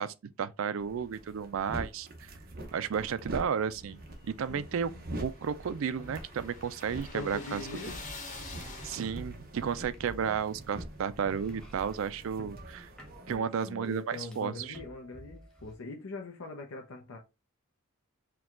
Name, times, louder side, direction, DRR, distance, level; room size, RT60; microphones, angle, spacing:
voice 1, 0.0-2.4 2.7-4.9 5.2-7.6 8.8-12.9 13.3-14.8, right 7 dB, 70° right, 0.4 m, -33 dB
sound 1, 0.8-13.4, right 1 dB, 45° right, 0.8 m, -45 dB
sound 2, 4.0-9.5, left 3 dB, 35° left, 1.0 m, -47 dB
voice 2, 4.5-5.0 7.1-8.0 12.4-12.5 13.3-17.2, left 2 dB, 75° left, 0.7 m, -42 dB
sound 3, 5.6-12.7 13.0-15.8, equal, 5° left, 0.8 m, -50 dB
4.5 x 2.3 x 3.6 m
head